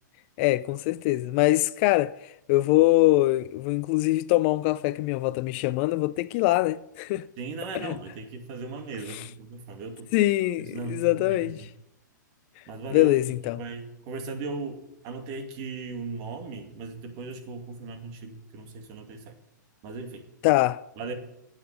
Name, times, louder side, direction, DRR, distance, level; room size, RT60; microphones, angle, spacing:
voice 1, 0.4-7.3 7.7-8.0 9.1-9.2 10.1-11.7 12.9-13.6 20.4-20.8, left 17 dB, 40° left, 0.4 m, -23 dB
voice 2, 7.4-10.1 10.6-11.7 12.7-19.4 19.8-20.2 21.0-21.1, right 4 dB, 40° right, 2.3 m, -37 dB
9.3 x 8.9 x 8.4 m
hypercardioid pair, 125°, 10 cm